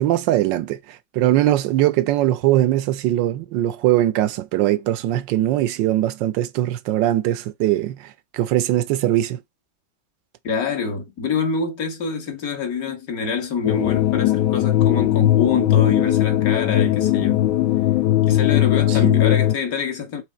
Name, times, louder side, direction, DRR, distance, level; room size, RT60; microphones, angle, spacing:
voice 1, 0.0-9.4 18.9-19.2, right 14 dB, 75° right, 1.2 m, -21 dB
voice 2, 10.4-17.4 18.3-20.2, left 5 dB, 50° left, 1.8 m, -26 dB
sound 1, 13.6-19.5, left 13 dB, 75° left, 1.1 m, -18 dB
6.3 x 3.5 x 4.3 m
omnidirectional pair, 2.1 m